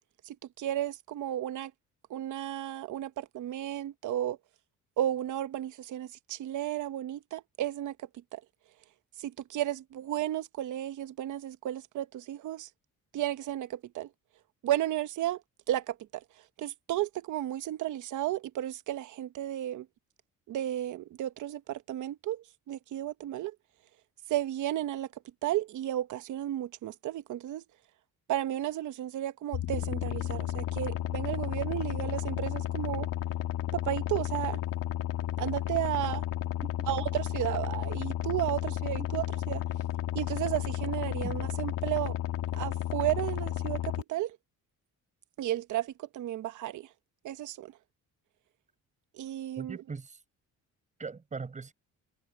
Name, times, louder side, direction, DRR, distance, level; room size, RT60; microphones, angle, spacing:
voice 1, 0.3-1.7 2.1-4.4 5.0-7.9 8.3-8.4 9.2-12.7 13.1-14.1 14.6-15.4 15.7-16.2 16.6-19.9 20.5-23.5 24.3-25.1 25.4-27.6 28.3-33.1 33.7-34.6 35.4-36.2 36.9-39.6 40.1-42.2 42.5-44.4 45.4-46.9 47.2-47.7 49.1-49.8, right 13 dB, 65° right, 1.0 m, -33 dB
sound 1, 29.5-44.0, left 13 dB, 80° left, 2.2 m, -33 dB
voice 2, 49.6-50.2 51.0-51.7, right 4 dB, 20° right, 7.5 m, -40 dB
cardioid pair, 170°, 33 cm